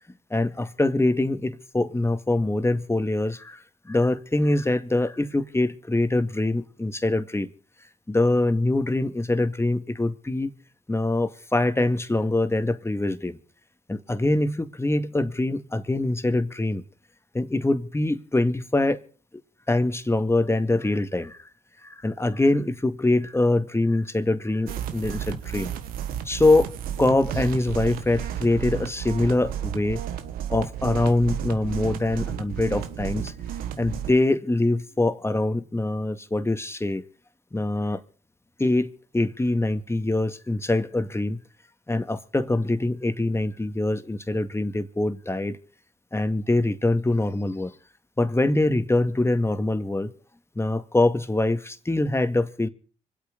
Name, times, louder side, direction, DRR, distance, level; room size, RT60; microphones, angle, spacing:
voice 1, 0.3-7.5 8.1-10.5 10.9-13.4 13.9-16.8 17.3-19.0 19.7-21.5 21.8-25.7 26.3-26.7 27.0-30.0 30.5-33.3 33.8-37.0 37.5-38.0 38.6-41.4 41.9-45.6 46.1-47.7 48.2-50.1 50.6-52.7, left 2 dB, 15° left, 2.0 m, -24 dB
sound 1, 24.7-34.1, right 9 dB, 85° right, 1.4 m, -32 dB
25.5 x 8.5 x 5.2 m
supercardioid pair, 50°, 15 cm